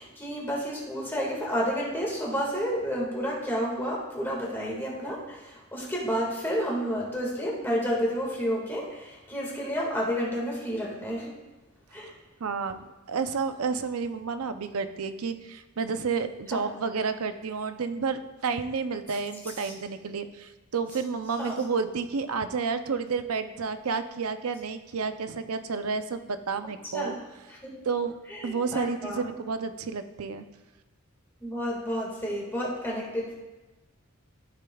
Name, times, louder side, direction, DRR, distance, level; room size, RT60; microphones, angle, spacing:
voice 1, 0.0-11.3 11.9-12.1 16.5-16.6 19.6-19.7 21.4-21.5 26.9-27.2 27.5-27.7 28.3-29.3 31.4-33.3, equal, 10° left, -4 dB, 1.8 m, -30 dB
voice 2, 12.4-27.2 27.9-28.1 28.4-30.4, right 5 dB, 80° right, 9 dB, 0.6 m, -30 dB
14.0 x 6.6 x 2.3 m, 1.1 s
head